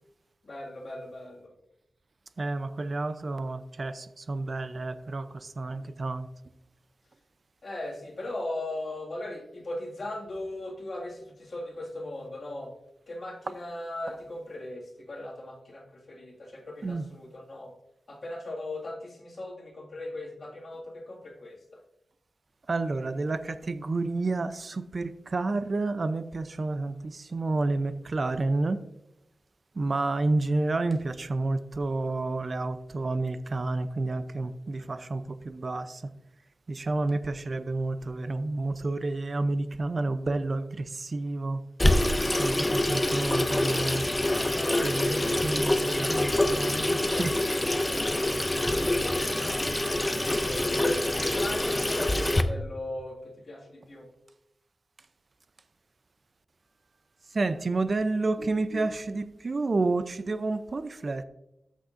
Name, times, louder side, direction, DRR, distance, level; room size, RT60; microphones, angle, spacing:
voice 1, 0.4-1.5 7.6-12.7 13.1-17.7 18.1-21.6 34.8-34.9 44.5-45.6 47.6-49.7 50.5-53.2 53.5-54.1 58.4-58.5 58.7-58.8, left 1 dB, 50° left, -2 dB, 2.1 m, -38 dB
voice 2, 2.4-6.3 13.5-13.6 14.1-14.2 16.8-17.1 22.7-28.8 29.7-36.1 36.7-41.6 42.3-44.0 44.8-47.4 57.3-61.2, right 2 dB, 45° right, 12 dB, 0.5 m, -30 dB
Water tap faucet / Sink (filling or washing), 41.8-52.4, left 1 dB, 15° left, 0.5 m, -26 dB
14.0 x 6.3 x 2.6 m, 0.86 s
wide cardioid pair, 115°, 0 cm